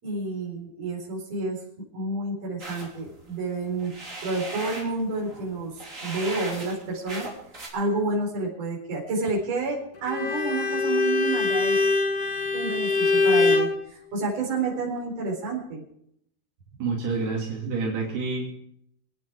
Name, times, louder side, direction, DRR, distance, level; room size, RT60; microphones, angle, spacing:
voice 1, 0.0-1.6 1.9-3.9 4.2-7.3 7.7-11.8 12.5-15.8, right 3 dB, 40° right, -3 dB, 5.3 m, -29 dB
sound 1, 2.6-7.7, right 2 dB, 20° right, 3.0 m, -38 dB
Bowed string instrument, 10.1-13.8, left 3 dB, 40° left, 1.4 m, -23 dB
voice 2, 16.8-18.4, right 4 dB, 75° right, -2 dB, 4.8 m, -28 dB
25.5 x 9.1 x 4.8 m, 0.73 s
omnidirectional pair, 4.6 m